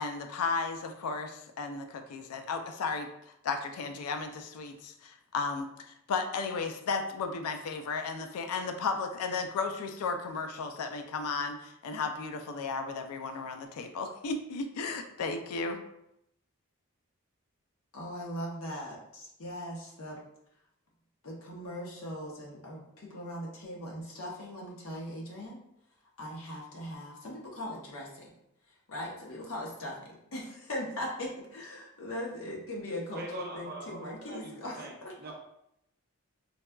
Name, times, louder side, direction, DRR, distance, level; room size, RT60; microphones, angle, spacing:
voice 1, 0.0-3.1 3.4-15.8, left 4 dB, 85° left, 6 dB, 0.3 m, -34 dB
voice 2, 17.9-20.2 21.2-25.6 26.2-28.3 28.9-34.9, left 1 dB, 70° left, -3 dB, 0.8 m, -39 dB
voice 3, 33.1-35.3, right 2 dB, 45° right, -1 dB, 0.6 m, -43 dB
4.0 x 2.3 x 2.2 m, 0.80 s
head